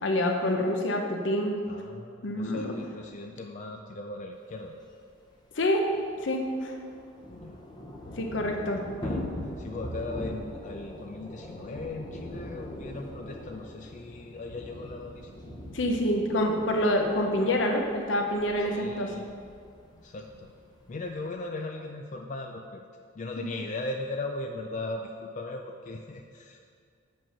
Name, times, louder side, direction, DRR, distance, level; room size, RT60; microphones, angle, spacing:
voice 1, 0.0-1.5 2.2-2.7 5.6-5.8 6.2-6.7 8.2-8.8 15.7-19.1, left 1 dB, 65° left, 2 dB, 0.8 m, -27 dB
voice 2, 1.6-4.7 7.3-7.6 8.4-9.2 9.6-15.3 18.6-19.3 19.9-20.5 20.9-22.8 23.1-26.6, left 2 dB, 35° left, 3 dB, 0.4 m, -38 dB
Thunder / Rain, 4.7-4.8 5.1-5.2 5.5-21.3, left 1 dB, 20° left, 0.8 m, -42 dB
7.3 x 5.3 x 5.5 m, 2.2 s
head